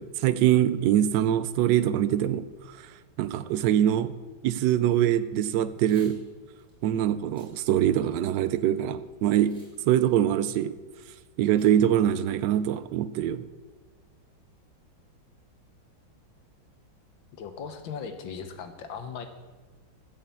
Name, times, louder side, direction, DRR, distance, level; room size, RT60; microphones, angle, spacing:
voice 1, 0.0-2.8 3.2-4.1 4.4-6.2 6.8-9.5 9.9-10.8 11.4-13.4, right 11 dB, 75° right, 13 dB, 1.2 m, -24 dB
Packing tape duct tape / Tearing, 5.8-6.1 6.6-6.7 7.2-7.5 8.0-8.6 9.3-9.7 10.0-10.1 11.6-11.7 12.1-12.2 12.5-12.8, right 1 dB, 25° right, 4.7 m, -56 dB
voice 2, 17.4-19.3, left 6 dB, 80° left, 7 dB, 1.8 m, -38 dB
12.5 x 5.7 x 8.4 m, 1.3 s
omnidirectional pair, 2.1 m